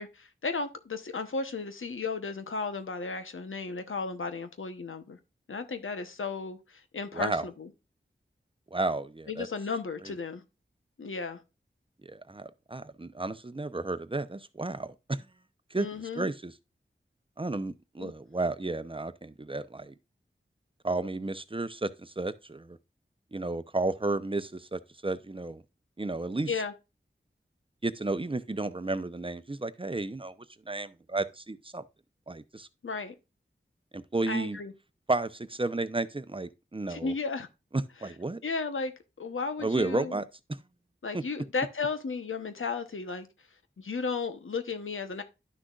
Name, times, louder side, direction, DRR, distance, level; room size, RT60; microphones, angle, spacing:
voice 1, 0.0-5.2 5.5-7.7 9.3-10.4 11.0-11.4 15.7-16.3 18.0-18.1 26.5-26.7 32.8-33.1 34.3-34.7 36.9-37.5 38.4-38.9 39.2-40.2 41.0-43.3 43.8-45.2, left 4 dB, 90° left, 0.9 m, -34 dB
voice 2, 7.1-7.5 8.7-9.5 10.0-10.1 12.0-15.2 15.7-15.9 16.2-16.5 17.4-19.9 20.8-22.8 23.3-25.6 26.0-26.5 27.8-30.3 30.7-31.8 32.3-32.7 33.9-34.6 35.1-37.1 37.7-38.4 39.6-40.6 41.1-41.2, right 2 dB, 25° right, 0.7 m, -32 dB
11.0 x 6.3 x 2.4 m
wide cardioid pair, 45°, 20 cm